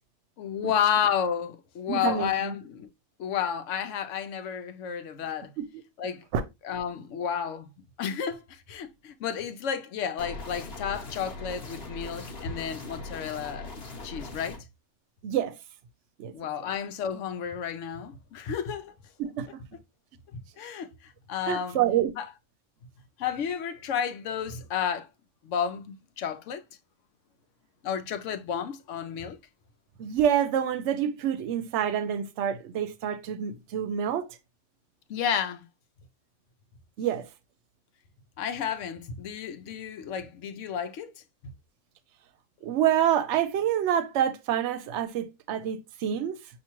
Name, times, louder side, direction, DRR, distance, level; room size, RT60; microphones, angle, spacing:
voice 1, 0.4-2.9 3.2-5.5 6.0-6.2 6.6-7.7 8.0-13.7 14.0-14.6 16.3-18.9 20.6-21.8 22.2-22.3 23.2-25.1 25.4-26.6 27.8-29.4 35.1-35.6 38.4-41.1, left 8 dB, 85° left, 1.0 m, -31 dB
voice 2, 1.9-2.5 5.6-5.7 6.3-6.4 15.2-15.5 16.2-16.3 19.2-19.5 21.5-22.1 30.0-34.3 37.0-37.3 42.6-46.4, right 9 dB, 75° right, 0.9 m, -27 dB
sound 1, 10.2-14.6, left 3 dB, 55° left, 1.2 m, -40 dB
5.7 x 2.7 x 2.9 m
omnidirectional pair, 1.2 m